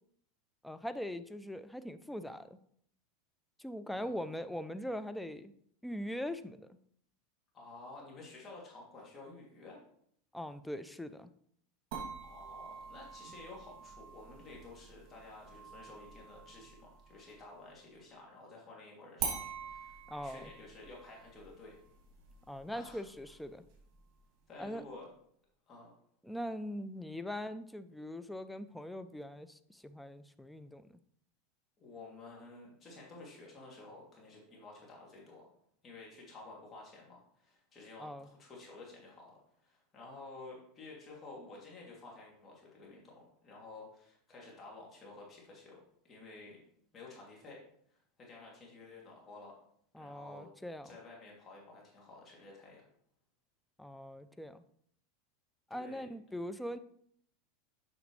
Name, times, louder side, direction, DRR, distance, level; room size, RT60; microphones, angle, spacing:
voice 1, 0.6-2.5 3.6-5.5 5.8-6.8 10.3-11.3 20.1-20.5 22.5-23.6 24.6-24.8 26.2-30.9 38.0-38.3 49.9-50.9 53.8-54.6 55.7-56.8, equal, 5° left, 11 dB, 0.4 m, -41 dB
voice 2, 7.5-9.8 12.2-21.8 22.7-23.0 24.5-25.1 25.7-25.9 31.8-35.5 35.8-46.6 46.9-47.6 47.9-49.5 50.0-50.5 50.8-52.8 55.7-56.1, left 3 dB, 30° left, -3 dB, 2.8 m, -52 dB
sound 1, 11.9-17.5 19.2-24.2, right 6 dB, 50° right, 2.5 m, -46 dB
8.0 x 5.9 x 3.2 m, 0.66 s
hypercardioid pair, 100°, 0 cm